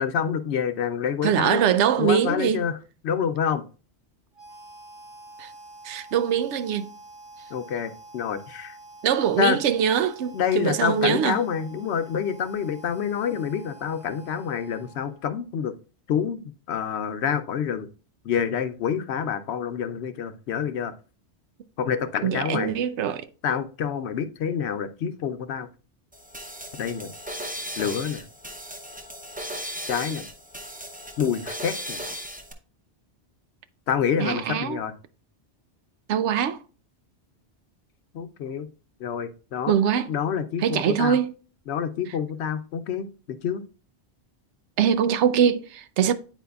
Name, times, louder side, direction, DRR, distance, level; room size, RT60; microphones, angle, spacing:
voice 1, 0.0-1.6 2.0-2.7 3.0-3.6 7.5-8.8 9.4-9.6 10.3-15.8 16.1-17.9 18.2-20.9 21.8-22.8 23.4-25.7 26.8-27.1 27.8-28.2 29.9-30.2 31.2-32.0 33.9-34.9 38.1-38.7 39.0-39.7 40.1-41.2 41.7-43.1 43.4-43.6, left 7 dB, 70° left, 0.9 m, -27 dB
voice 2, 1.2-2.6 5.4-5.5 5.8-6.9 9.0-11.4 22.2-23.3 34.2-34.8 36.1-36.6 39.7-40.1 40.6-41.3 44.8-46.1, right 8 dB, 80° right, 0.9 m, -23 dB
Harmonica, 4.3-15.4, right 2 dB, 45° right, 2.3 m, -47 dB
sound 1, 26.1-32.5, equal, 10° right, 0.5 m, -36 dB
9.2 x 4.4 x 2.3 m
omnidirectional pair, 1.2 m